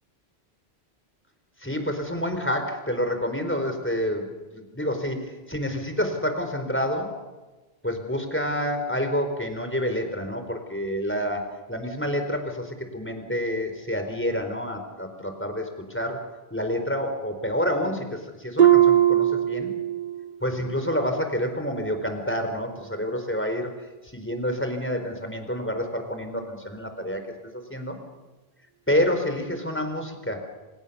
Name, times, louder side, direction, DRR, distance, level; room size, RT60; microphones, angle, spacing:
voice 1, 1.6-7.1 7.8-11.4 11.7-16.2 16.5-19.7 20.4-23.8 24.0-28.0 28.9-30.5, equal, 10° left, 6 dB, 4.4 m, -28 dB
Harp, 18.6-20.4 20.7-21.1 21.7-21.8, right 11 dB, 45° right, 1.5 m, -20 dB
28.5 x 28.0 x 7.0 m, 1.2 s
omnidirectional pair, 1.1 m